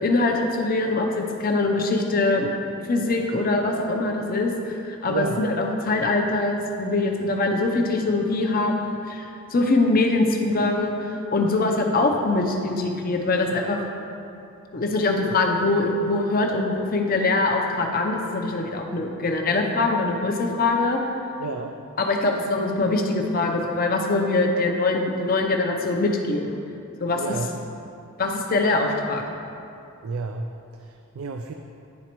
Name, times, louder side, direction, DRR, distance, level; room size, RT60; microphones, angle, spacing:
voice 1, 0.0-2.5 2.9-13.8 14.7-21.0 22.0-26.6 27.0-27.4 28.2-29.2, left 2 dB, 40° left, 2 dB, 0.6 m, -23 dB
voice 2, 5.1-5.5 21.4-21.7 27.2-27.5 30.0-31.5, right 4 dB, 75° right, 5 dB, 0.3 m, -31 dB
10.5 x 4.1 x 3.0 m, 2.7 s
head